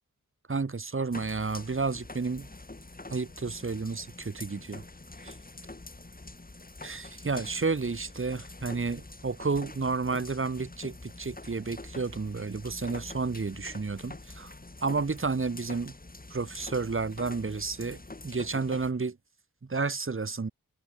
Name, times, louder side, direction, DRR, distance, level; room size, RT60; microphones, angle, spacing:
voice 1, 0.5-2.5 3.1-4.8 5.2-5.3 6.8-14.5 14.8-15.9 16.3-19.2 19.7-20.5, right 4 dB, 35° right, 1.4 m, -31 dB
sound 1, 1.1-18.9, left 2 dB, 25° left, 3.0 m, -46 dB
wide cardioid pair, 100°, 35 cm